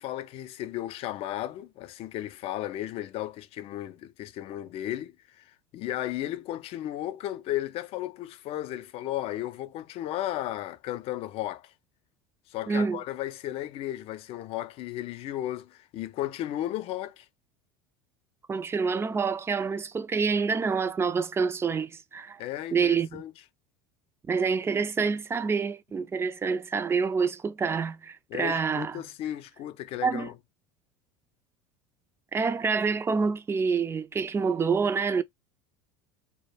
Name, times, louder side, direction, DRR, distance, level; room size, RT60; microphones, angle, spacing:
voice 1, 0.0-5.1 5.7-11.7 12.5-17.3 22.4-23.3 28.3-30.3, left 13 dB, 50° left, 0.4 m, -34 dB
voice 2, 12.7-13.0 18.5-22.4 22.7-23.2 24.3-29.0 30.0-30.3 32.3-35.2, right 5 dB, 20° right, 0.3 m, -27 dB
2.1 x 2.1 x 3.1 m
hypercardioid pair, 85°, 13 cm